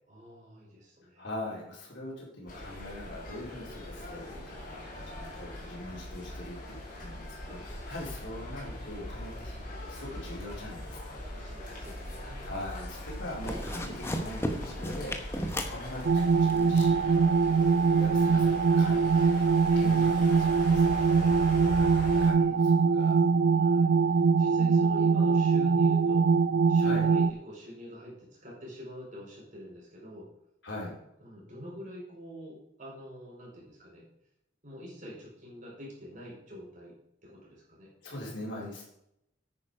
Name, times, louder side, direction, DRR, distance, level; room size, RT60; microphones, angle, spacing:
voice 1, 0.1-1.3 11.3-12.5 21.5-22.9 23.6-26.4 26.7-30.3 31.2-34.1 34.6-36.9 37.2-37.9, equal, 45° right, -3 dB, 4.9 m, -46 dB
voice 2, 1.2-11.2 12.4-19.5 19.7-21.3 22.2-23.8 26.8-27.1 30.6-30.9 38.0-38.8, left 1 dB, 75° left, -3 dB, 4.3 m, -42 dB
sound 1, 2.5-22.3, left 1 dB, 45° left, 4.4 m, -41 dB
sound 2, 11.8-12.4 12.7-13.0 13.3-16.9, equal, 15° left, 1.1 m, -35 dB
sound 3, 16.0-27.3, right 5 dB, 60° right, 0.4 m, -23 dB
9.6 x 9.4 x 5.0 m, 0.80 s
head